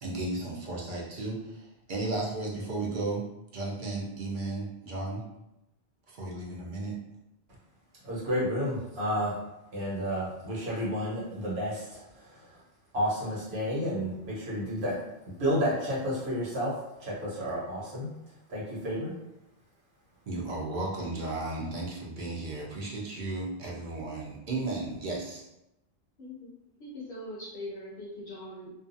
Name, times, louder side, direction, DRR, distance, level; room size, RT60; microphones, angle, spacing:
voice 1, 0.0-3.3 3.5-5.2 6.1-7.0 20.3-25.4, right 2 dB, 55° right, -4 dB, 0.7 m, -34 dB
voice 2, 8.0-9.4 9.7-12.5 12.9-15.0 15.4-18.1 18.5-19.1, equal, 80° right, -7 dB, 1.3 m, -31 dB
voice 3, 26.2-28.7, left 1 dB, 65° left, -5 dB, 0.8 m, -42 dB
2.5 x 2.4 x 2.6 m, 0.89 s
omnidirectional pair, 1.1 m